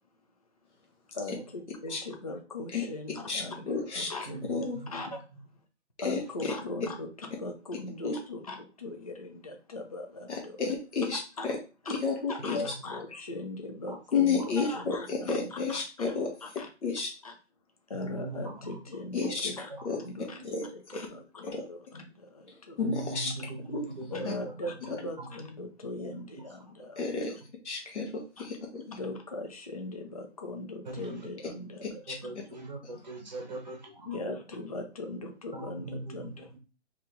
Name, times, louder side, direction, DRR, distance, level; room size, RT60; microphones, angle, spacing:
voice 1, 1.1-4.4 4.9-5.3 6.0-10.6 11.4-11.5 11.9-12.0 12.3-16.1 16.4-16.7 17.2-17.3 17.9-22.8 24.1-27.4 28.4-28.5 28.9-32.3 34.1-36.6, left 2 dB, 35° left, 3 dB, 0.4 m, -40 dB
voice 2, 3.3-4.1 4.5-4.8 6.0-6.5 8.0-8.2 10.3-11.6 11.9-12.6 14.1-16.3 16.8-17.1 19.1-19.5 19.8-20.0 20.5-20.6 20.9-21.1 21.4-21.6 22.8-23.3 23.7-23.9 24.2-24.3 27.0-27.3 27.6-28.8 31.8-31.9, left 5 dB, 70° left, 1 dB, 1.3 m, -31 dB
voice 3, 4.2-4.9 5.1-5.2 12.6-12.7 13.9-14.0 14.4-14.5 17.9-18.8 19.2-19.3 19.7-19.8 20.3-20.4 22.8-24.9 25.2-25.3 26.0-26.4 26.9-27.0 30.8-31.2 32.1-34.2 35.5-36.6, right 2 dB, 40° right, 1 dB, 0.7 m, -41 dB
3.3 x 2.8 x 3.6 m, 0.33 s
hypercardioid pair, 170°, 35 cm